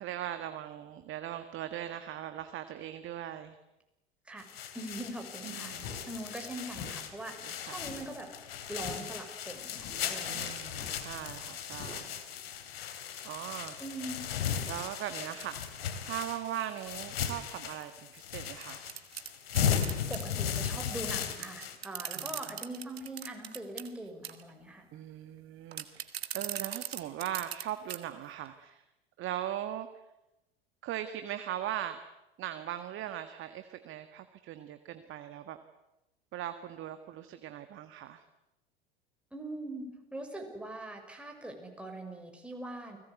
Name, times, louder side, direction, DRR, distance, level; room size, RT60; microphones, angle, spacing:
voice 1, 0.0-3.6 5.4-5.9 7.4-7.8 10.3-12.5 13.2-13.7 14.6-15.6 16.0-18.8 22.1-22.6 24.9-28.8 29.2-29.9 30.8-32.0 32.4-35.6 36.3-38.2, right 11 dB, 40° right, 9 dB, 1.7 m, -39 dB
sound 1, 4.4-21.8, left 8 dB, 70° left, 3.1 m, -37 dB
voice 2, 4.7-8.3 8.7-10.5 13.8-14.2 19.6-24.9 39.3-43.0, right 1 dB, 5° right, 2 dB, 6.4 m, -42 dB
sound 2, 5.8-6.1 6.7-7.0 7.8-8.2 8.8-9.1 9.8-10.1 10.7-11.1 11.7-12.0, left 5 dB, 55° left, 7.2 m, -45 dB
sound 3, 18.6-20.2 21.1-21.2 21.4-23.9 24.2-24.5 25.7-27.6 27.9-28.0 28.4-28.5, right 10 dB, 75° right, 1.9 m, -39 dB
29.5 x 20.5 x 8.3 m, 0.94 s
figure-of-eight pair, 80°, 31 cm